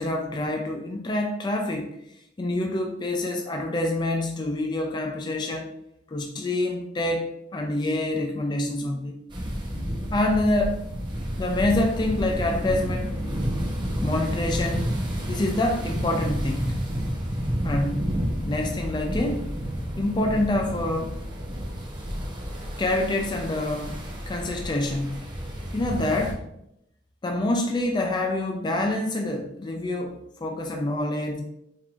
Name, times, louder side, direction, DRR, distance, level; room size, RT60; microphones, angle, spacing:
voice 1, 0.0-1.9 2.4-5.7 6.1-9.2 10.1-10.8 11.4-13.2 14.0-14.9 15.3-16.9 17.6-18.1 18.4-19.5 20.0-21.2 22.8-24.0 24.3-25.3 25.7-26.4 27.2-31.4, left 1 dB, 25° left, 2 dB, 0.4 m, -26 dB
sound 1, 9.3-26.3, equal, 25° right, 0.8 m, -30 dB
4.5 x 3.6 x 2.5 m, 0.78 s
head